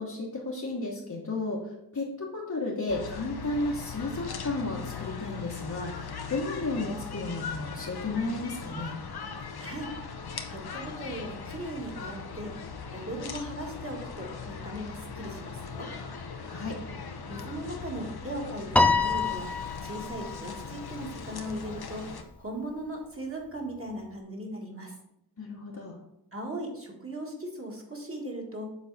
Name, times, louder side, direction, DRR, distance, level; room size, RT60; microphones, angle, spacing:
voice 1, 0.0-1.6 1.9-8.9 16.4-16.8 25.4-26.0, left 2 dB, 45° left, -4 dB, 1.2 m, -33 dB
sound 1, 2.9-22.2, left 5 dB, 65° left, 0.8 m, -39 dB
voice 2, 9.6-9.9 10.5-12.5 12.9-15.9 17.3-19.5 19.8-22.0 22.4-24.9 26.3-28.7, right 1 dB, 30° right, -1 dB, 1.8 m, -38 dB
Piano, 18.8-21.2, left 3 dB, 5° left, 0.3 m, -27 dB
7.3 x 4.0 x 4.1 m, 0.82 s
wide cardioid pair, 55°, 42 cm